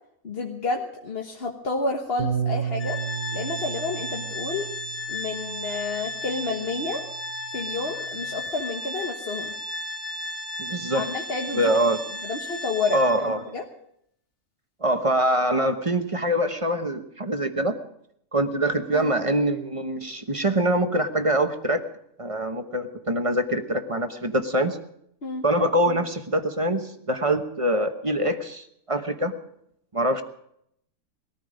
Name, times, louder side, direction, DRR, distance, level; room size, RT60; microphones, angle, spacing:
voice 1, 0.2-3.0 3.3-4.7 5.1-7.0 7.5-9.6 10.9-13.0 13.5-13.6 18.9-19.1 25.2-25.4, left 3 dB, 40° left, 0 dB, 1.5 m, -30 dB
Bass guitar, 2.2-8.4, right 7 dB, 50° right, 1.1 m, -34 dB
Organ, 2.8-13.4, left 1 dB, 85° left, 3.0 m, -34 dB
voice 2, 10.6-11.1 11.5-12.0 12.9-13.4 14.8-17.8 18.3-21.8 22.2-24.8 25.4-29.3 29.9-30.2, right 1 dB, 25° right, 7 dB, 1.0 m, -24 dB
20.0 x 14.0 x 5.1 m, 0.72 s
omnidirectional pair, 1.6 m